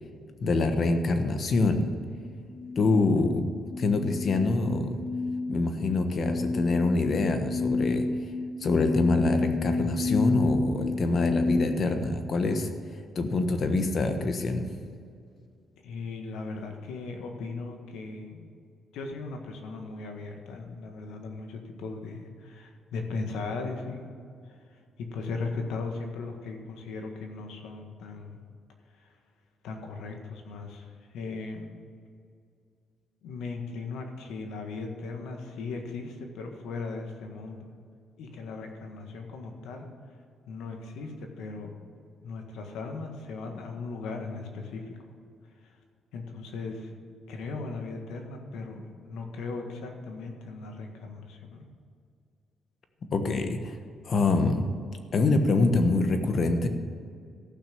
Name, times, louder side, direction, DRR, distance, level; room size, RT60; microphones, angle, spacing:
voice 1, 0.4-1.9 2.7-3.4 3.8-5.0 5.5-8.0 8.6-12.7 13.1-14.7 53.1-53.8 54.0-54.6 55.1-56.7, left 3 dB, 50° left, 7 dB, 1.3 m, -25 dB
sound 1, 2.2-11.6, left 3 dB, 35° left, 3.1 m, -30 dB
voice 2, 15.8-18.5 18.9-24.1 24.5-28.4 29.0-29.1 29.6-31.7 33.2-37.7 38.2-39.9 40.5-41.8 42.2-45.0 45.6-45.8 46.1-46.9 47.3-51.6, left 3 dB, 85° left, 3 dB, 1.7 m, -38 dB
14.5 x 6.1 x 7.0 m, 2.3 s
cardioid pair, 90°, 0 cm